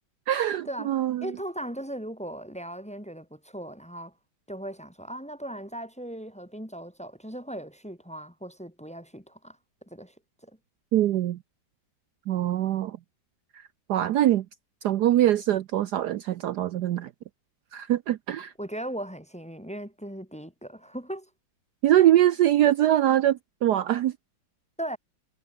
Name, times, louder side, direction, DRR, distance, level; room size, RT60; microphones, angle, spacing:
voice 1, 0.3-1.3 10.9-11.4 12.3-13.0 13.5-14.5 14.8-17.1 17.7-18.5 21.8-24.1, right 12 dB, 65° right, 1.2 m, -23 dB
voice 2, 1.2-4.1 4.5-9.6 9.9-10.1 10.4-10.5 18.6-21.3 24.8-25.0, right 1 dB, 5° left, 2.2 m, -38 dB
omnidirectional pair, 2.0 m